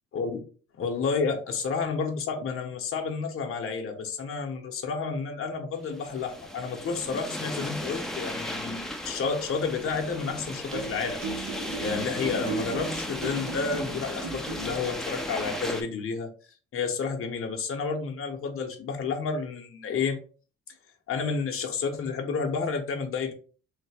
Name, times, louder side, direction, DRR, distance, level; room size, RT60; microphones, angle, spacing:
voice 1, 0.8-11.5 11.8-16.3 16.7-20.2 21.1-23.3, left 5 dB, 45° left, 3 dB, 0.8 m, -30 dB
sound 1, 5.9-15.8, left 1 dB, ahead, 0.4 m, -36 dB
sound 2, 10.7-15.0, right 4 dB, 85° right, 1.0 m, -37 dB
3.2 x 2.1 x 3.2 m, 0.39 s
cardioid pair, 90°, 30 cm